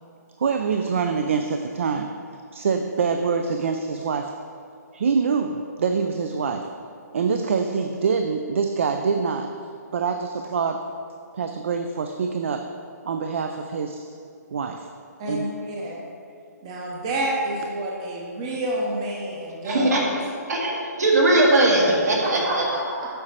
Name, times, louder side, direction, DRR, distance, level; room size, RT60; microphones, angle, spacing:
voice 1, 0.4-2.2 2.5-4.4 4.9-6.8 7.1-9.6 9.9-11.0 11.3-12.7 13.1-14.1 14.5-14.9 15.3-15.7, right 5 dB, 45° right, 6 dB, 0.3 m, -25 dB
voice 2, 15.2-16.0 16.6-19.9 22.2-23.1, right 1 dB, 20° right, -3 dB, 0.7 m, -29 dB
voice 3, 19.6-20.2 20.5-22.7, right 2 dB, 65° right, -1 dB, 1.7 m, -20 dB
7.7 x 5.0 x 4.2 m, 2.4 s
hypercardioid pair, 170°, 10 cm